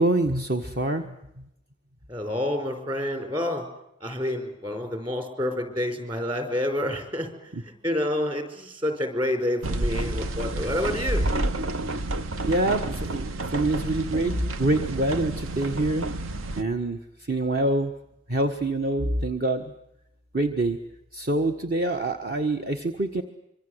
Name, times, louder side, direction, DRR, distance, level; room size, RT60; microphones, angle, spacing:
voice 1, 0.0-1.4 7.5-7.6 12.4-16.1 16.6-17.0 17.3-17.9 18.3-19.6 20.3-20.8 21.1-23.2, right 2 dB, 45° right, 6 dB, 1.5 m, -25 dB
voice 2, 2.1-3.7 4.0-11.2, left 1 dB, 25° right, 6 dB, 5.0 m, -28 dB
sound 1, 9.6-16.6, right 2 dB, 80° right, 1.0 m, -30 dB
25.5 x 24.5 x 8.1 m, 0.84 s
head